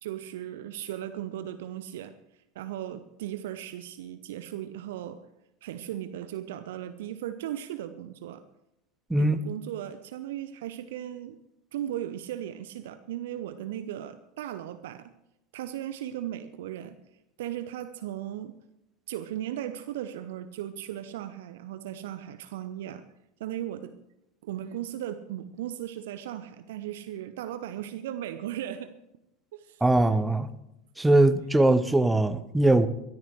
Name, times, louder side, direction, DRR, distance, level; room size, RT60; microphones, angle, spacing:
voice 1, 0.0-2.1 2.5-5.2 5.6-8.4 9.2-11.4 11.7-15.1 15.5-17.0 17.4-18.5 19.1-23.0 23.4-24.0 24.4-28.9 29.5-29.8, right 11 dB, 60° right, 11 dB, 0.7 m, -37 dB
voice 2, 29.8-30.5 31.0-32.9, right 2 dB, 5° right, 12 dB, 0.9 m, -21 dB
22.5 x 13.5 x 3.2 m, 0.87 s
figure-of-eight pair, 80°, 0 cm